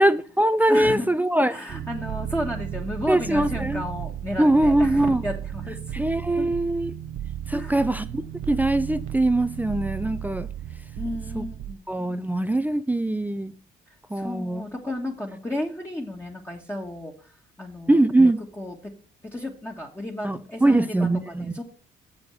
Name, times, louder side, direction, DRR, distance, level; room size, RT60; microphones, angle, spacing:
voice 1, 0.0-1.6 3.1-3.8 4.4-5.2 5.9-6.9 7.5-8.2 8.5-10.5 11.3-11.4 11.9-13.5 14.1-14.6 17.9-18.4 20.2-21.5, right 1 dB, 10° right, 0.4 m, -22 dB
voice 2, 0.7-1.1 1.5-6.0 6.4-6.5 7.5-7.9 11.0-11.8 14.1-18.0 18.6-18.9 19.2-21.6, left 1 dB, 10° left, 1.5 m, -33 dB
sound 1, 1.7-11.7, right 11 dB, 80° right, 0.6 m, -34 dB
7.1 x 5.3 x 6.9 m
cardioid pair, 90°, 20 cm